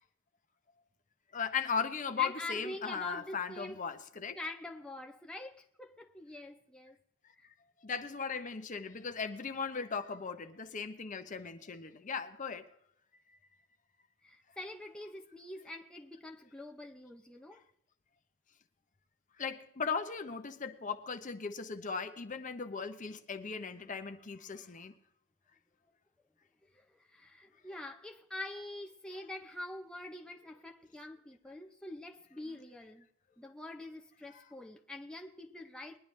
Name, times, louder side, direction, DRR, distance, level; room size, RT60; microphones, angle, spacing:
voice 1, 1.3-4.4 7.8-12.7 13.3-13.4 19.4-24.9 32.5-32.6 34.3-34.4, left 6 dB, 40° left, 0.7 m, -38 dB
voice 2, 2.2-3.8 4.4-7.0 7.4-7.5 14.2-17.6 26.7-33.1 33.4-36.0, left 1 dB, 5° left, 0.6 m, -45 dB
21.0 x 10.5 x 3.2 m
head